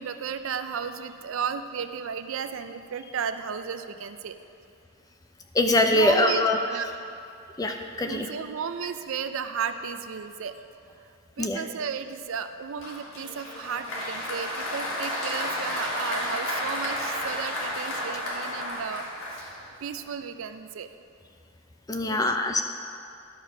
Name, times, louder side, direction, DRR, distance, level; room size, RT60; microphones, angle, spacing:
voice 1, 0.0-4.4 5.9-6.5 6.7-6.9 8.1-10.5 11.0-11.1 11.4-19.4 19.8-20.9 22.0-22.2, right 7 dB, 70° right, 10 dB, 0.4 m, -34 dB
voice 2, 5.5-6.6 7.6-8.3 11.4-11.6 21.9-22.6, left 2 dB, 15° left, 4 dB, 0.5 m, -23 dB
Applause, 12.8-19.9, left 1 dB, 75° left, 1.7 m, -32 dB
11.5 x 4.6 x 5.8 m, 2.5 s
head